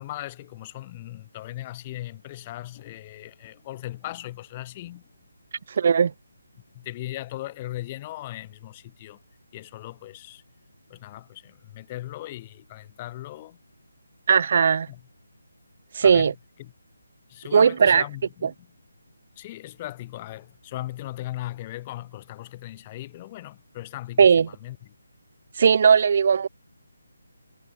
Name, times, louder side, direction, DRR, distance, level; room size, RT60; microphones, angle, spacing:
voice 1, 0.0-5.1 6.7-9.2 9.5-10.4 10.9-13.6 14.9-15.0 16.0-16.3 16.6-16.7 17.3-18.5 19.4-24.9, left 15 dB, 20° left, 1.0 m, -38 dB
voice 2, 5.7-6.1 14.3-14.9 15.9-16.3 17.5-18.0 18.4-18.5 24.2-24.5 25.6-26.5, right 6 dB, 45° right, 0.4 m, -18 dB
figure-of-eight pair, 165°, 0 cm